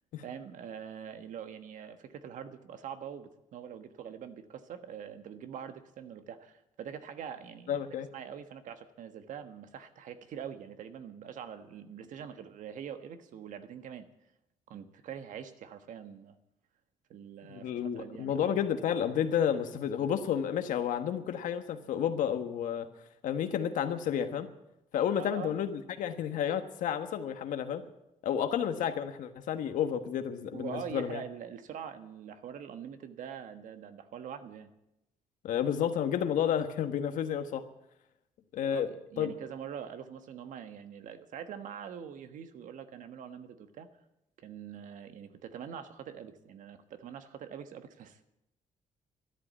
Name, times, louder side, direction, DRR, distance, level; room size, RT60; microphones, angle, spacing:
voice 1, 0.2-7.8 8.1-14.0 14.7-16.4 17.1-18.6 25.2-25.6 30.5-34.7 38.7-43.9 44.4-48.2, right 8 dB, 80° right, 9 dB, 1.4 m, -44 dB
voice 2, 7.7-8.1 17.5-22.9 23.2-24.5 24.9-27.8 28.2-31.2 35.4-37.6 38.5-38.9 39.2-39.3, left 9 dB, 90° left, 8 dB, 1.4 m, -31 dB
13.0 x 11.5 x 8.3 m, 0.85 s
cardioid pair, 120°, 13 cm